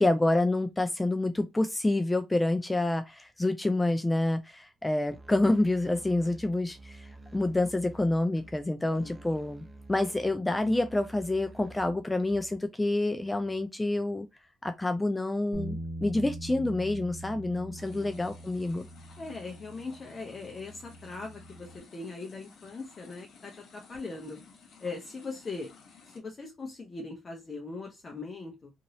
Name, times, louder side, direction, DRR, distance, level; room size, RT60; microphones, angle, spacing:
voice 1, 0.0-14.3 14.6-18.9, left 2 dB, 15° left, 0.3 m, -28 dB
Musical instrument, 5.1-12.6, right 2 dB, 20° right, 0.6 m, -50 dB
voice 2, 8.9-9.2 17.6-18.1 19.2-24.4 24.8-25.7 26.1-28.7, left 3 dB, 35° left, 0.7 m, -40 dB
sound 1, 15.5-21.8, right 1 dB, 75° right, 1.0 m, -43 dB
sound 2, 17.8-26.2, left 5 dB, 70° left, 1.0 m, -55 dB
3.0 x 2.7 x 2.7 m
cardioid pair, 90°, 0 cm